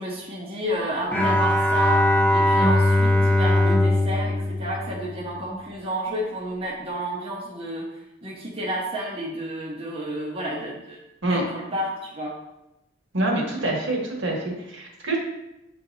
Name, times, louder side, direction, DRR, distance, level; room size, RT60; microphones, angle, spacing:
voice 1, 0.0-7.9 8.2-11.0 11.3-12.4, right 1 dB, 30° right, -4 dB, 0.9 m, -31 dB
Bowed string instrument, 1.1-5.6, left 1 dB, 10° left, 0.5 m, -20 dB
voice 2, 13.1-15.2, right 2 dB, 70° right, -1 dB, 1.6 m, -26 dB
8.5 x 4.0 x 2.8 m, 0.91 s
head